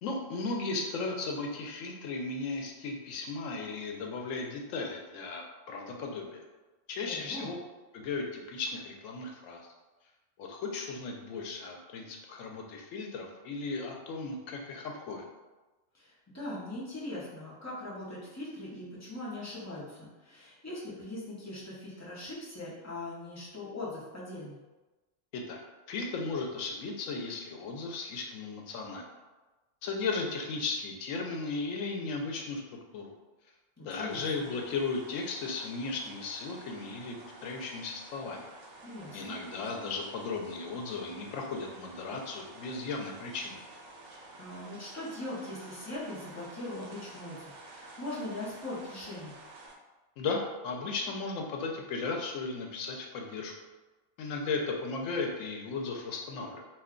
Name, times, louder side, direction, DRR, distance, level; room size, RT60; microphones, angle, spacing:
voice 1, 0.0-6.4 6.9-7.5 7.9-9.7 10.4-15.3 25.3-25.6 25.9-29.0 29.8-32.6 32.9-33.1 33.8-38.5 39.1-43.6 50.2-53.5 54.2-56.7, left 3 dB, 80° left, 1 dB, 0.9 m, -36 dB
voice 2, 7.0-7.5 15.9-24.6 33.8-34.5 38.8-39.4 44.3-49.3, left 1 dB, 15° left, -8 dB, 0.6 m, -41 dB
sound 1, 34.1-49.7, right 2 dB, 85° right, 1.0 m, -51 dB
2.5 x 2.2 x 3.6 m, 1.2 s
omnidirectional pair, 1.3 m